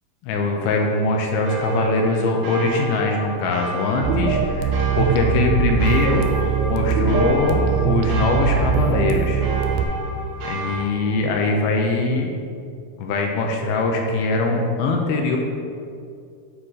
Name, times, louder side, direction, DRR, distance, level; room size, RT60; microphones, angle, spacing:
voice 1, 0.2-4.7 5.0-6.3 6.7-9.4 10.4-12.3 13.0-15.4, left 3 dB, 85° left, 1 dB, 2.4 m, -22 dB
sound 1, 1.4-10.9, right 3 dB, 65° right, 2.4 m, -31 dB
sound 2, 4.0-9.8, right 7 dB, 85° right, 2.2 m, -21 dB
9.4 x 3.7 x 4.8 m, 2.4 s
omnidirectional pair, 4.6 m